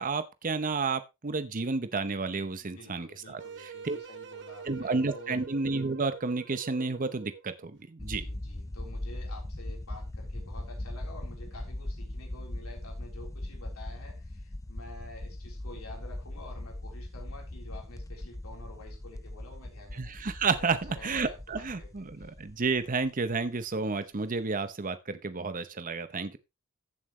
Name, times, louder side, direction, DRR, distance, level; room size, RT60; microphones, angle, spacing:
voice 1, 0.0-3.4 3.8-4.0 4.7-8.2 20.0-20.8 21.0-26.4, right 4 dB, 40° right, 0.8 m, -31 dB
voice 2, 2.6-5.4 8.0-20.1 20.6-21.9 22.2-22.3, left 2 dB, 85° left, 3.8 m, -49 dB
sound 1, 3.4-7.7, right 6 dB, 55° right, 1.4 m, -45 dB
sound 2, 8.0-23.6, left 1 dB, 15° left, 0.5 m, -40 dB
15.0 x 7.4 x 3.1 m
head